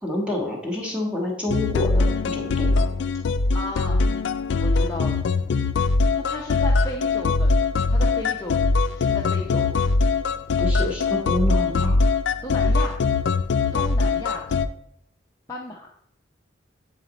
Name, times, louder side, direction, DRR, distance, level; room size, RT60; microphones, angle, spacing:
voice 1, 0.0-2.9 10.6-12.1, left 1 dB, 5° right, -2 dB, 1.3 m, -28 dB
sound 1, 1.5-14.7, left 3 dB, 70° left, 0.4 m, -22 dB
voice 2, 3.5-4.0 4.6-5.2 6.2-7.6 7.9-9.8 12.4-13.0 13.7-14.5 15.5-15.9, left 1 dB, 15° left, -3 dB, 0.6 m, -34 dB
8.3 x 4.2 x 4.0 m, 0.74 s
head